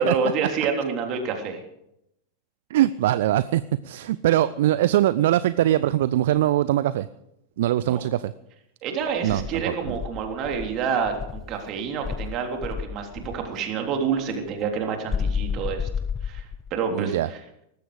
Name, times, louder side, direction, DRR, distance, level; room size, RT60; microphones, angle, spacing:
voice 1, 0.0-1.6 7.9-8.0 8.8-15.9 16.2-17.4, right 6 dB, 35° right, 3 dB, 3.4 m, -28 dB
voice 2, 2.7-7.1 7.6-8.3 9.2-10.0 16.9-17.3, right 13 dB, 55° right, 17 dB, 0.5 m, -22 dB
Insect, 9.3-11.5 12.0-13.4 15.1-16.8, left 6 dB, 20° left, 1.3 m, -31 dB
18.5 x 15.0 x 5.1 m, 0.82 s
figure-of-eight pair, 90°, 0 cm